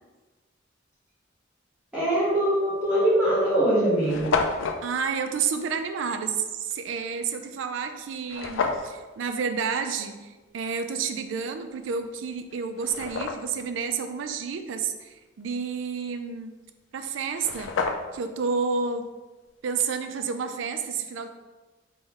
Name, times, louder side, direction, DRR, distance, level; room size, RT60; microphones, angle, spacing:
voice 1, 1.9-4.4, right 1 dB, 5° right, -11 dB, 0.9 m, -22 dB
sound 1, 2.5-2.7 3.4-3.5 3.6-3.7 3.9-4.8 8.3-8.9 11.8-11.9 12.5-13.6 17.0-17.1 17.3-18.3, left 4 dB, 75° left, 0.4 m, -29 dB
voice 2, 4.8-16.6 16.9-17.7 18.1-19.1 19.6-21.3, right 5 dB, 75° right, 8 dB, 0.4 m, -30 dB
3.7 x 2.2 x 4.1 m, 1.2 s
head